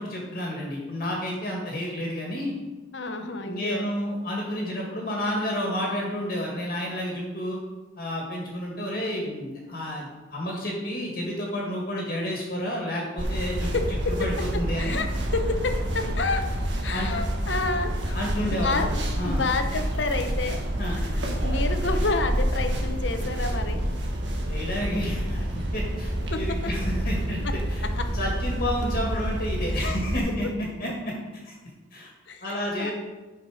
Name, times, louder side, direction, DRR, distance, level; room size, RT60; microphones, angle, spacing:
voice 1, 0.0-2.5 3.2-7.6 8.0-13.7 14.1-15.0 16.9-17.1 18.1-19.4 20.8-21.0 24.5-27.8 28.1-30.5 30.8-31.1 31.4-31.5 31.9-32.1 32.4-32.9, equal, 50° left, -2 dB, 1.9 m, -30 dB
voice 2, 2.9-3.9 13.7-13.8 14.8-15.1 15.3-16.4 16.8-18.2 18.6-18.9 19.2-20.6 21.4-23.8 27.9-28.0 29.7-30.0 32.3-32.9, left 3 dB, 75° left, 7 dB, 0.9 m, -29 dB
sound 1, 13.2-30.2, equal, 75° right, 1.6 m, -28 dB
11.0 x 5.9 x 5.0 m, 1.2 s
head